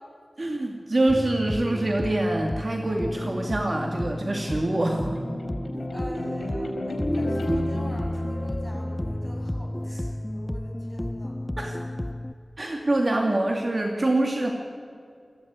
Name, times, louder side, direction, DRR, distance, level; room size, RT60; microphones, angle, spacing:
voice 1, 0.4-5.2 11.6-11.8 12.6-14.5, right 2 dB, 45° right, 2 dB, 2.4 m, -25 dB
After (chillout trap), 1.1-12.3, left 1 dB, 20° left, 0.6 m, -32 dB
sound 1, 4.2-9.5, left 1 dB, 80° left, 4.9 m, -32 dB
voice 2, 5.9-11.4, equal, ahead, 0 dB, 6.8 m, -43 dB
22.0 x 16.0 x 9.5 m, 2.3 s
wide cardioid pair, 65°, 0 cm